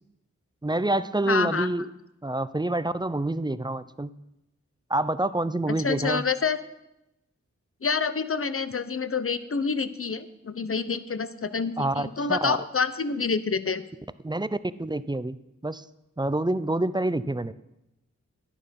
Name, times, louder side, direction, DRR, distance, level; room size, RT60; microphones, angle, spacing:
voice 1, 0.6-1.9 2.2-4.1 4.9-6.2 11.8-12.6 14.2-14.5 14.8-15.4 15.6-15.8 16.2-17.5, right 2 dB, 15° right, 14 dB, 0.5 m, -27 dB
voice 2, 1.3-1.7 5.7-6.6 7.8-13.8, left 5 dB, 45° left, 13 dB, 0.9 m, -27 dB
11.5 x 10.5 x 5.3 m, 0.89 s
cardioid pair, 55°, 30 cm